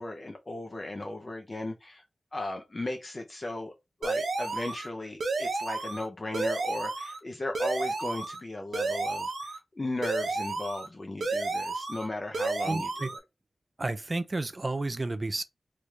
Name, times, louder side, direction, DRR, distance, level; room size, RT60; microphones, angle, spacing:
voice 1, 0.0-2.0 2.3-3.7 4.0-13.2, left 2 dB, 30° left, 0.6 m, -36 dB
sound 1, 4.0-4.9 5.2-6.1 6.3-7.2 7.5-8.4 8.7-9.6 10.0-10.9 11.2-12.1 12.3-13.2, right 3 dB, 75° right, 0.7 m, -31 dB
voice 2, 12.7-13.1 13.8-15.4, right 2 dB, 30° right, 0.4 m, -31 dB
3.1 x 2.5 x 3.2 m
wide cardioid pair, 110°, 0 cm